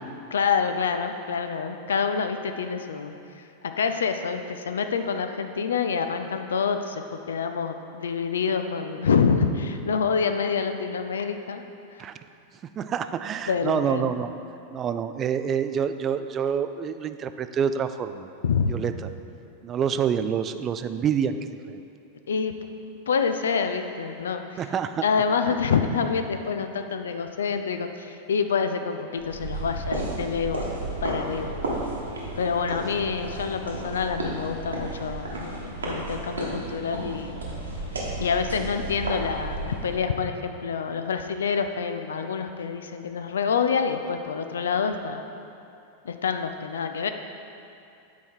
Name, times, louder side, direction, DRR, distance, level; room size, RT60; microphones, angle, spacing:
voice 1, 0.3-11.6 11.9-12.1 13.5-14.1 18.4-18.7 22.3-22.5 23.1-24.7 25.0-30.7 31.0-31.6 32.4-37.4 38.2-45.2 46.0-47.1, left 6 dB, 65° left, 7 dB, 0.4 m, -27 dB
voice 2, 12.8-14.3 14.7-18.3 18.7-18.9 19.6-21.4 21.7-21.8 24.6-25.0, right 7 dB, 25° right, 10 dB, 0.3 m, -27 dB
sound 1, 29.2-40.1, right 2 dB, 75° right, 1.3 m, -33 dB
8.1 x 4.9 x 4.4 m, 2.7 s
figure-of-eight pair, 90°, 0 cm